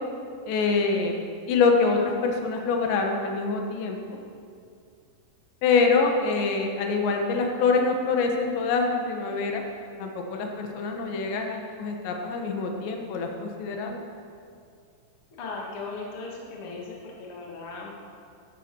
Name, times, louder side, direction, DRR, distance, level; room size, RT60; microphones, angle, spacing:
voice 1, 0.5-1.2 1.5-4.2 5.6-9.6 10.0-14.1, left 4 dB, 70° left, 2 dB, 3.6 m, -25 dB
voice 2, 15.4-18.1, left 3 dB, 40° left, -2 dB, 2.1 m, -37 dB
14.0 x 13.0 x 6.3 m, 2.4 s
omnidirectional pair, 5.6 m